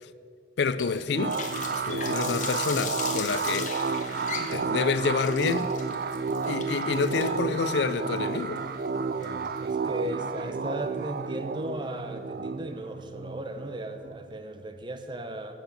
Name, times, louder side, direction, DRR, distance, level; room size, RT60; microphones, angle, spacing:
voice 1, 0.6-1.4 1.7-3.8 4.2-5.7 6.5-8.6, left 5 dB, 65° left, 0.4 m, -28 dB
Water tap faucet, 0.8-9.7, left 7 dB, 40° left, 1.2 m, -39 dB
sound 1, 1.1-14.4, right 4 dB, 50° right, 0.4 m, -31 dB
voice 2, 9.1-15.5, right 1 dB, 25° right, 0.7 m, -36 dB
10.0 x 8.1 x 6.8 m
head